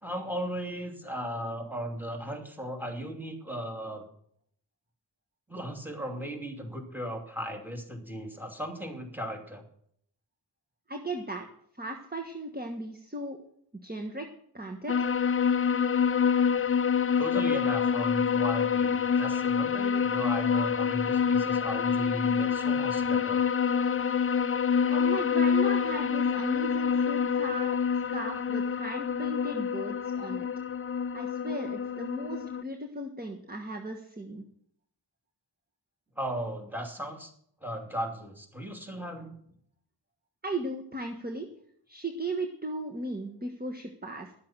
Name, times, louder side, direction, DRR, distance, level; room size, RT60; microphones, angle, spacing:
voice 1, 0.0-4.1 5.5-9.6 17.2-23.4 36.2-37.3 37.6-39.4, equal, 5° right, 4 dB, 2.8 m, -36 dB
voice 2, 10.9-11.4 11.8-13.4 13.8-14.3 14.5-15.1 24.8-30.5 31.1-34.5 40.4-41.5 41.9-44.3, right 1 dB, 20° right, 3 dB, 1.4 m, -36 dB
sound 1, 14.9-32.6, left 7 dB, 35° left, 0.4 m, -27 dB
11.5 x 7.5 x 7.3 m, 0.66 s
wide cardioid pair, 45°, 42 cm